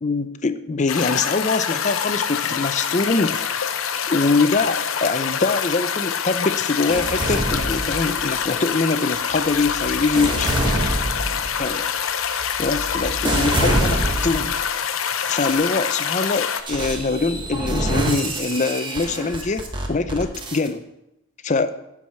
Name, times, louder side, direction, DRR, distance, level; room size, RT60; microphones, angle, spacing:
voice 1, 0.0-10.5 11.6-11.9 12.6-14.6 15.3-20.9 21.4-21.7, left 3 dB, 35° left, 11 dB, 0.5 m, -23 dB
sound 1, 0.9-16.6, left 7 dB, 80° left, 0.7 m, -25 dB
Impact Metal Texture, 6.9-8.5 9.1-14.6 15.2-15.6 16.7-20.7, right 1 dB, 20° right, 1.1 m, -26 dB
9.9 x 4.8 x 7.0 m, 0.89 s
head